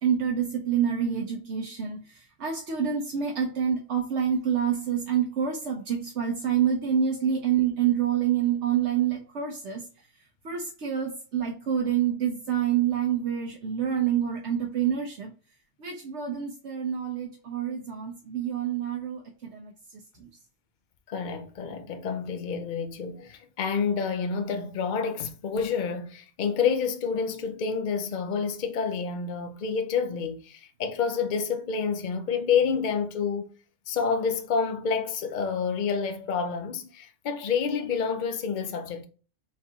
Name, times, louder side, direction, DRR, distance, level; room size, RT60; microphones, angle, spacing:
voice 1, 0.0-9.9 10.4-15.3 15.8-20.3, right 8 dB, 75° right, 1.1 m, -27 dB
voice 2, 21.1-33.4 33.9-39.1, left 6 dB, 50° left, 0.7 m, -28 dB
4.5 x 3.6 x 2.8 m
omnidirectional pair, 1.2 m